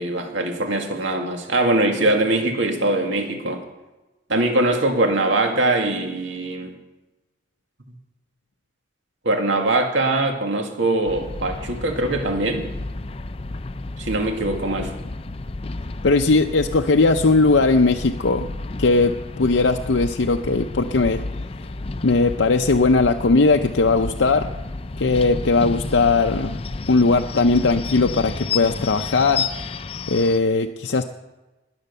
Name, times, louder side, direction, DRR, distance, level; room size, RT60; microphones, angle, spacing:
voice 1, 0.0-3.6 4.3-6.7 9.2-12.7 14.0-15.0, right 2 dB, 85° right, 3 dB, 2.1 m, -22 dB
sound 1, 11.1-30.4, left 3 dB, 30° left, 0.5 m, -31 dB
voice 2, 16.0-18.5 18.8-21.2 22.0-24.5 25.0-26.6 26.9-29.5 30.1-31.1, left 3 dB, 80° left, 4 dB, 0.6 m, -18 dB
20.5 x 8.0 x 6.8 m, 1.1 s
head